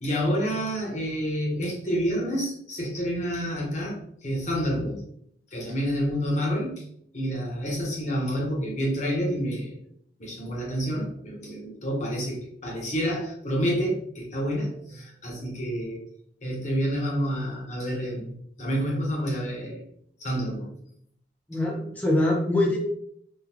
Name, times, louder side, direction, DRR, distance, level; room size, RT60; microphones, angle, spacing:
voice 1, 0.0-5.0 5.5-6.8 7.1-9.8 10.2-16.0 16.4-19.8 20.2-20.7, equal, 40° left, -2 dB, 1.0 m, -28 dB
voice 2, 21.5-22.8, left 1 dB, 10° left, -2 dB, 0.5 m, -24 dB
3.6 x 2.3 x 2.8 m, 0.67 s
head